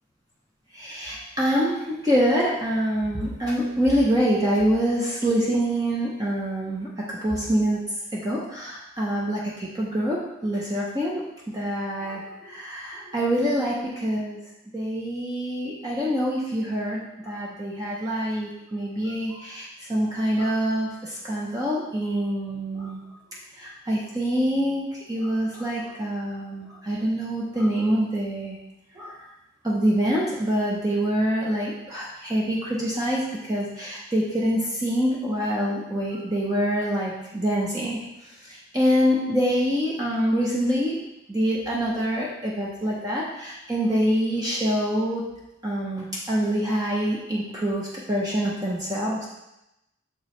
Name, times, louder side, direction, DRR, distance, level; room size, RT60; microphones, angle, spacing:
voice 1, 0.7-7.8 8.1-14.4 14.7-23.0 23.6-28.6 29.0-29.1 29.6-38.0 38.5-41.0 41.3-45.2 45.6-49.3, equal, 20° right, -5 dB, 0.7 m, -25 dB
6.4 x 4.6 x 3.2 m, 0.91 s
head